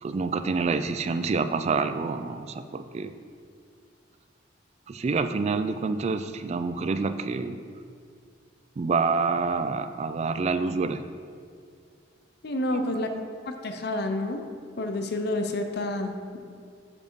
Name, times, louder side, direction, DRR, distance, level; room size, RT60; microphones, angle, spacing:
voice 1, 0.0-3.1 4.9-7.6 8.8-11.0 12.7-13.1, right 4 dB, 35° right, 10 dB, 0.3 m, -27 dB
voice 2, 12.4-13.1 13.5-14.4 14.8-16.4, left 2 dB, 60° left, 6 dB, 0.6 m, -29 dB
7.2 x 5.2 x 4.5 m, 2.2 s
head